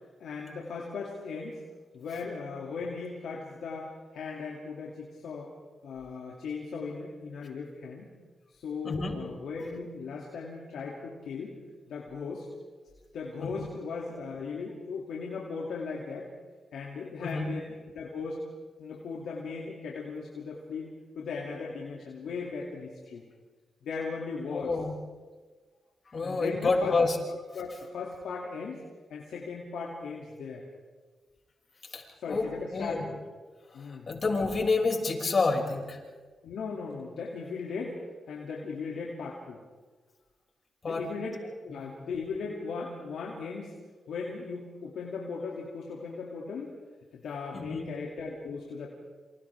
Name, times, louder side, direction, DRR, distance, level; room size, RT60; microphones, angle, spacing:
voice 1, 0.2-1.6 1.9-5.5 5.8-8.1 8.6-11.6 11.9-12.5 13.1-16.3 16.7-18.4 18.8-23.2 23.8-24.7 26.2-26.9 27.5-28.8 29.1-30.6 32.2-33.2 33.7-34.2 36.4-38.0 38.3-39.6 40.9-43.7 44.1-46.7 47.1-48.9, left 4 dB, 80° left, -2 dB, 2.6 m, -37 dB
voice 2, 8.8-9.1 13.4-13.7 17.2-17.5 24.5-24.9 26.1-27.2 31.9-33.0 33.8-36.0 40.8-41.0 47.5-47.9, left 3 dB, 50° left, 0 dB, 6.3 m, -28 dB
28.5 x 26.0 x 3.6 m, 1.4 s
supercardioid pair, 45°, 0 cm